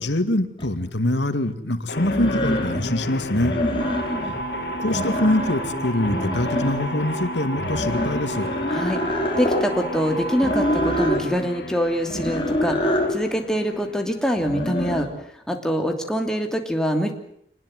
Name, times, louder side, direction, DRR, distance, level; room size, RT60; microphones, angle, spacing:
voice 1, 0.0-3.5 4.8-8.5, left 1 dB, 85° left, 10 dB, 2.3 m, -24 dB
sound 1, 0.6-0.7 2.0-2.9 3.3-4.4 4.7-5.7 6.0-7.0 7.6-9.7 10.4-11.3 12.1-13.2 14.4-15.1, left 1 dB, 30° left, 4.8 m, -26 dB
sound 2, 1.9-14.9, left 2 dB, 65° left, 3.8 m, -34 dB
sound 3, 3.8-11.1, right 3 dB, 35° right, 5.0 m, -33 dB
voice 2, 8.7-9.0 9.4-15.1 15.3-17.1, equal, 5° left, 3 dB, 3.0 m, -24 dB
26.0 x 19.5 x 7.9 m, 0.71 s
head